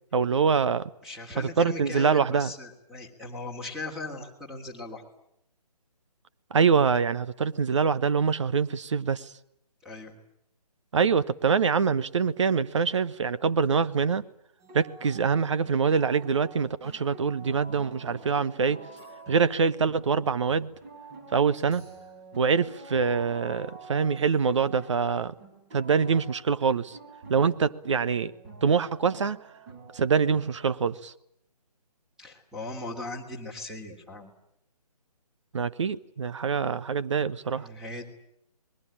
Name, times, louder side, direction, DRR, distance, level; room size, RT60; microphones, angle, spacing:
voice 1, 0.1-0.9 1.4-2.5 6.5-9.3 10.9-14.3 14.7-18.8 19.3-20.7 21.3-21.8 22.4-25.3 25.7-27.0 27.3-28.3 28.6-29.4 29.9-31.1 35.5-37.7, right 5 dB, 50° right, 1.1 m, -25 dB
voice 2, 1.0-5.0 9.8-10.2 32.2-34.3 37.5-38.1, left 2 dB, ahead, 3.0 m, -38 dB
sound 1, 14.6-30.5, right 3 dB, 25° right, 4.5 m, -48 dB
27.5 x 21.5 x 8.7 m
figure-of-eight pair, 150°, 20 cm